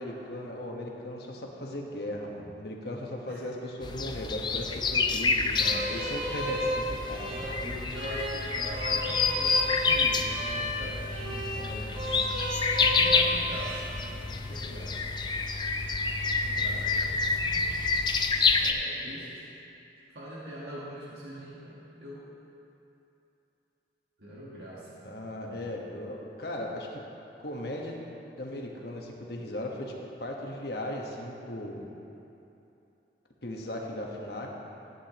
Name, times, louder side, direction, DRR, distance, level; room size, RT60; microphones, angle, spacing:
voice 1, 0.0-5.4 5.9-7.3 25.0-27.0 27.4-28.0 28.4-29.9 30.2-31.8 33.4-34.5, left 1 dB, 65° left, -1 dB, 1.3 m, -37 dB
sound 1, 3.8-18.7, left 4 dB, 25° left, 0.4 m, -28 dB
voice 2, 5.4-6.0 7.3-12.2 12.8-15.0 16.4-17.7 18.5-19.5 20.1-22.3 24.2-25.1 25.4-25.7, right 1 dB, 70° right, -7 dB, 1.5 m, -42 dB
sound 2, 5.6-13.8, equal, 35° right, 2.2 m, -34 dB
15.0 x 9.6 x 3.0 m, 2.8 s
head